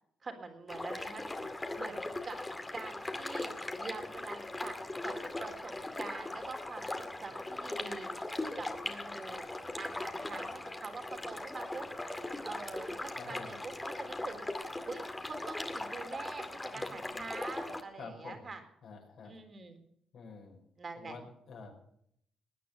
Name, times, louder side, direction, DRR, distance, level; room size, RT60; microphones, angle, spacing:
voice 1, 0.2-1.2 1.8-2.4 2.7-3.5 3.8-4.8 5.0-8.1 8.6-9.4 9.8-11.9 12.4-14.5 14.9-18.6 19.2-19.8 20.8-21.2, right 4 dB, 35° right, 6 dB, 3.8 m, -45 dB
sound 1, 0.7-17.8, left 2 dB, 15° left, 2.3 m, -39 dB
voice 2, 13.2-13.6 16.7-17.2 18.0-18.5 18.8-19.4 20.1-20.6 21.0-21.7, left 4 dB, 65° left, 2 dB, 5.9 m, -48 dB
20.5 x 9.4 x 7.0 m, 0.69 s
cardioid pair, 90°, 0 cm